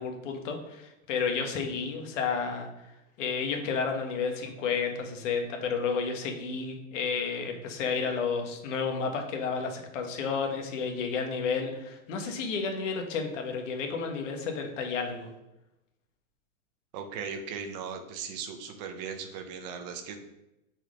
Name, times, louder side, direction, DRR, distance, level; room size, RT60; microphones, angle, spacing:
voice 1, 0.0-2.7 3.2-15.3, left 5 dB, 65° left, 4 dB, 1.7 m, -31 dB
voice 2, 16.9-20.2, right 6 dB, 30° right, 6 dB, 0.9 m, -38 dB
6.2 x 6.1 x 5.2 m, 0.91 s
supercardioid pair, 180°, 40 cm